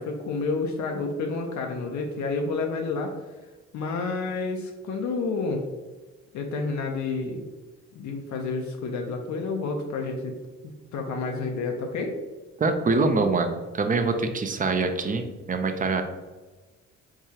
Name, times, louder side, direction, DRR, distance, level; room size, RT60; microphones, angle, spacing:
voice 1, 0.0-3.1 3.7-5.6 6.3-7.4 7.9-10.4 10.6-12.2, left 3 dB, 70° left, 2 dB, 0.5 m, -29 dB
voice 2, 12.6-16.0, right 3 dB, 30° right, 7 dB, 0.4 m, -24 dB
4.7 x 2.3 x 2.8 m, 1.2 s
cardioid pair, 90°, 30 cm